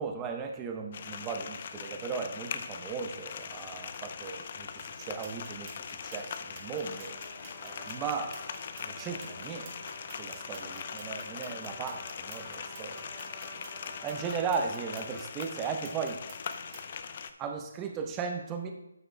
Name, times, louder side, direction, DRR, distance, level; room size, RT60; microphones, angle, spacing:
voice 1, 0.0-5.7 6.0-7.2 7.6-8.4 8.8-9.7 10.2-13.0 14.0-16.2 17.4-18.7, right 5 dB, 15° right, 3 dB, 0.9 m, -36 dB
sound 1, 0.9-17.3, left 6 dB, 40° left, 0.5 m, -41 dB
sound 2, 4.8-16.9, right 4 dB, 35° right, 1.8 m, -52 dB
Trumpet, 6.7-15.3, equal, 5° left, 1.3 m, -50 dB
13.5 x 6.4 x 2.3 m, 0.88 s
figure-of-eight pair, 150°, 0 cm